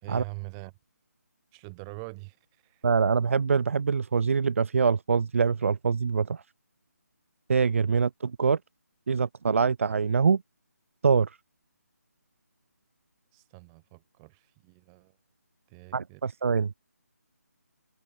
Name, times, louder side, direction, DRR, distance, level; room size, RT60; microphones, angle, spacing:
voice 1, 0.0-0.7 1.5-2.4 2.6-2.8 13.3-15.1 15.7-16.2, right 32 dB, 15° right, 3.9 m, -43 dB
voice 2, 2.8-6.4 7.5-8.6 9.1-10.4 11.0-11.3 15.9-16.7, right 5 dB, 50° right, 1.2 m, -24 dB
figure-of-eight pair, 160°, 9 cm